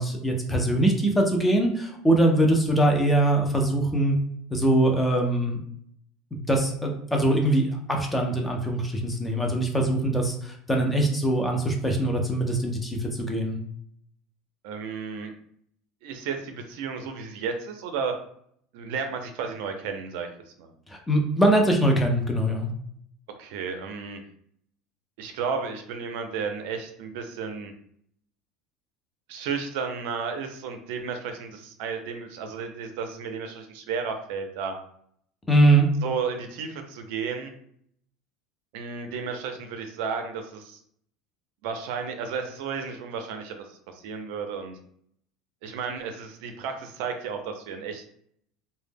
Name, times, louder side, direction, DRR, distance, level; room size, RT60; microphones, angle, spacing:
voice 1, 0.0-4.2 4.5-5.6 6.3-13.6 20.9-22.7 35.5-35.9, right 1 dB, 10° left, 1 dB, 0.4 m, -22 dB
voice 2, 14.6-15.3 16.0-18.1 18.7-20.3 20.6-20.7 23.4-24.2 25.2-27.7 29.3-34.7 36.0-37.5 38.7-40.8 41.6-44.8 45.6-48.0, right 5 dB, 65° right, 6 dB, 0.4 m, -33 dB
2.1 x 2.0 x 3.3 m, 0.66 s
cardioid pair, 165°, 0 cm